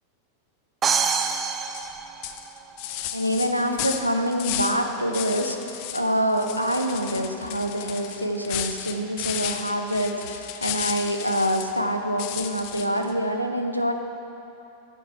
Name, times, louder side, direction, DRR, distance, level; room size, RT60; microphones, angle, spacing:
sound 1, 0.8-2.8, right 6 dB, 25° right, 0.6 m, -26 dB
sound 2, 1.7-1.9 2.2-4.8 5.1-6.1 6.3-11.8 12.2-13.1, left 11 dB, 45° left, 0.6 m, -33 dB
voice 1, 3.1-13.9, equal, 90° right, 4 dB, 0.8 m, -26 dB
9.9 x 7.9 x 5.7 m, 2.7 s
figure-of-eight pair, 90°, 0 cm